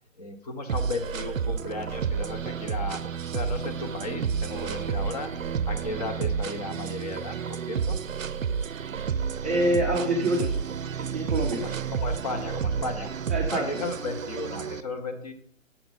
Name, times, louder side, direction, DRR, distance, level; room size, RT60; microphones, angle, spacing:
voice 1, 0.2-5.3 5.7-8.0 11.5-13.1 13.5-15.3, left 2 dB, 30° left, 5 dB, 0.8 m, -35 dB
sound 1, 0.7-14.8, right 6 dB, 75° right, 0.5 m, -30 dB
voice 2, 9.4-10.6 11.0-11.6 13.3-13.7, right 1 dB, 10° right, -9 dB, 0.5 m, -26 dB
7.2 x 4.8 x 5.4 m, 0.64 s
figure-of-eight pair, 130°, 39 cm